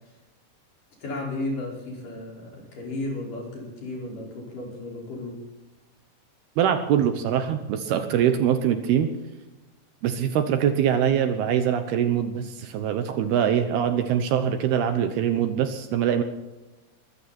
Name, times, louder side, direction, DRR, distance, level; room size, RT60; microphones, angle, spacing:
voice 1, 1.0-5.4, left 2 dB, 50° left, -2 dB, 6.8 m, -34 dB
voice 2, 6.6-9.1 10.0-16.2, right 9 dB, 70° right, 8 dB, 2.7 m, -23 dB
21.5 x 15.5 x 4.4 m, 1.1 s
omnidirectional pair, 5.1 m